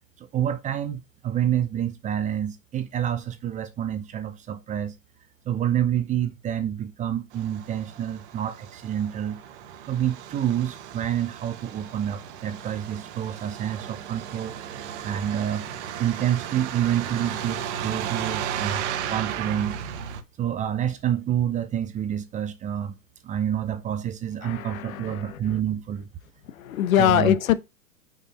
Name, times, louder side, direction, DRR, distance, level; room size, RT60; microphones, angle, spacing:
voice 1, 0.2-4.9 5.5-9.4 9.9-14.6 15.0-15.7 16.0-19.8 20.4-23.0 23.2-26.1 27.0-27.4, right 10 dB, 15° right, 0.6 m, -28 dB
Truck, 7.3-20.2, right 9 dB, 50° right, 1.4 m, -35 dB
voice 2, 24.4-25.4 26.6-27.5, left 10 dB, 70° left, 1.1 m, -23 dB
6.4 x 6.0 x 4.1 m
hypercardioid pair, 125°, 43 cm